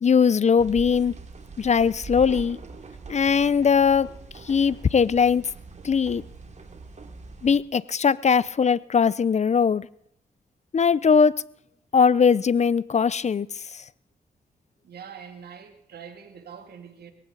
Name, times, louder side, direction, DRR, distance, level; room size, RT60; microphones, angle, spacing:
voice 1, 0.0-1.1 1.6-2.6 3.1-4.1 4.4-5.4 5.8-6.2 7.4-9.9 10.7-11.4 11.9-13.8, left 6 dB, 45° left, 21 dB, 0.6 m, -20 dB
sound 1, 0.6-7.6, right 4 dB, 45° right, 2.7 m, -42 dB
voice 2, 14.8-17.1, right 7 dB, 75° right, 6 dB, 2.5 m, -43 dB
22.0 x 16.0 x 4.0 m, 0.76 s
supercardioid pair, 50°, 16 cm